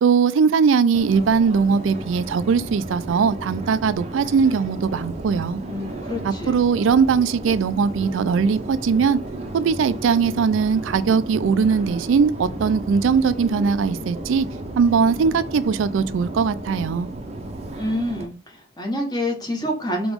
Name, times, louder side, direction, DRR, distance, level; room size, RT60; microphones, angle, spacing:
voice 1, 0.0-5.6 6.2-9.2 9.5-14.5 14.8-17.1, right 5 dB, 90° right, 0.4 m, -20 dB
Subway metro underground, 0.9-18.3, right 1 dB, 35° right, 0.6 m, -33 dB
voice 2, 5.7-6.5 17.8-20.1, equal, 20° left, 1.1 m, -27 dB
5.0 x 3.0 x 3.5 m
head